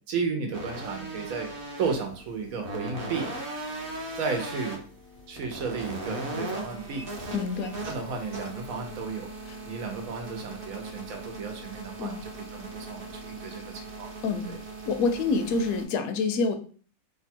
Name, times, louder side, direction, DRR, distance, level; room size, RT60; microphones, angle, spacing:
voice 1, 0.1-1.5 1.8-3.3 4.2-4.8 5.3-7.1 7.9-9.3 9.6-14.1 14.5-14.6, right 5 dB, 70° right, 4 dB, 1.1 m, -33 dB
sound 1, 0.5-15.8, right 2 dB, 45° right, 0.8 m, -39 dB
voice 2, 7.3-7.8 9.5-9.6 12.0-12.2 14.2-14.6 14.8-16.6, left 4 dB, 75° left, 7 dB, 1.0 m, -27 dB
2.9 x 2.3 x 4.2 m, 0.43 s
omnidirectional pair, 1.6 m